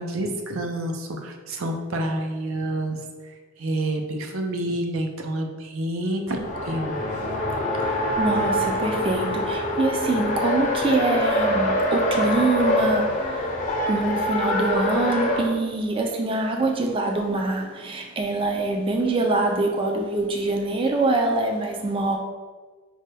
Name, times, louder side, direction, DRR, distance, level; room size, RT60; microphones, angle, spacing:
voice 1, 0.0-7.0, right 1 dB, 90° right, 3 dB, 0.5 m, -28 dB
Race car auto racing, 6.3-15.5, left 1 dB, 40° left, 0.5 m, -25 dB
voice 2, 7.7-13.6 13.9-22.2, right 2 dB, 25° right, 3 dB, 0.3 m, -24 dB
5.3 x 2.2 x 3.2 m, 1.4 s
head